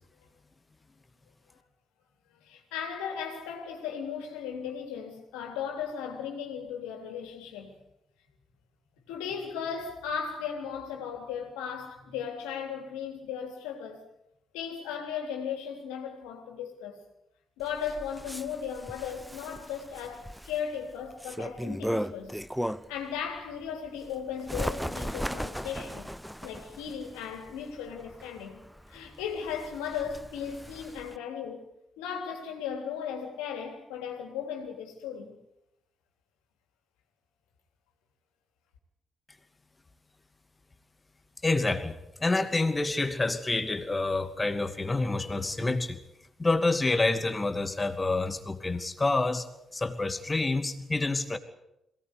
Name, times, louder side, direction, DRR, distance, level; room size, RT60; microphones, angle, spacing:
voice 1, 2.4-7.7 9.1-14.0 14.5-17.0 17.6-22.3 22.9-26.1 26.4-28.6 28.9-31.6 32.0-35.4, left 7 dB, 80° left, 3.3 m, -36 dB
Bird, 17.6-23.0 23.5-31.2, equal, ahead, 0.9 m, -37 dB
voice 2, 41.4-46.0 46.4-49.5 49.7-51.4, left 2 dB, 25° left, 2.5 m, -28 dB
22.5 x 18.0 x 8.4 m
hypercardioid pair, 40°, 0 cm